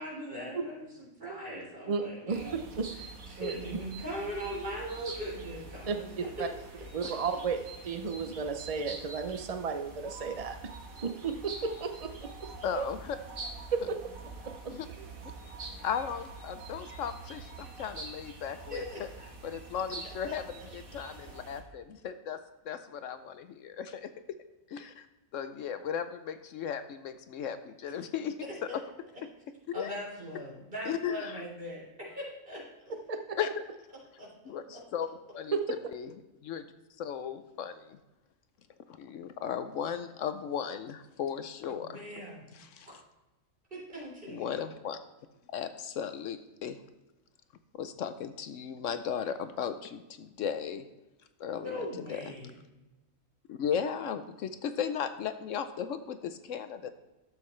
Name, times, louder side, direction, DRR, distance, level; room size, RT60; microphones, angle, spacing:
voice 1, 0.0-2.5 3.3-6.1 6.4-6.5 18.7-19.0 20.3-20.4 29.7-32.9 34.2-34.3 34.7-34.8 41.7-42.6 42.8-42.9 43.7-44.5 51.5-52.5, equal, 40° right, -5 dB, 3.9 m, -40 dB
voice 2, 1.9-2.4 2.8-2.9 3.4-3.5 5.9-6.5 6.9-7.6 7.8-10.6 11.0-12.4 12.8-12.9 13.7-14.0 14.4-15.0 33.1-33.4 35.5-35.8, right 5 dB, 55° right, 7 dB, 0.4 m, -33 dB
sound 1, 2.3-21.6, right 3 dB, 85° right, 1.7 m, -45 dB
voice 3, 12.6-13.2 14.7-14.9 15.8-19.1 19.4-22.4 22.6-24.1 24.7-25.0 25.3-28.3 28.7-28.8 29.7-29.9 30.8-31.4 33.4-33.5 34.5-35.1 35.3-35.6 35.9-36.1 36.4-36.7 37.0-38.0 38.9-42.0 42.6-43.0 44.3-45.0 45.5-46.8 47.7-50.9 51.4-52.2 53.5-56.9, left 8 dB, 70° left, 10 dB, 0.9 m, -36 dB
12.5 x 7.5 x 3.2 m, 1.1 s
omnidirectional pair, 1.4 m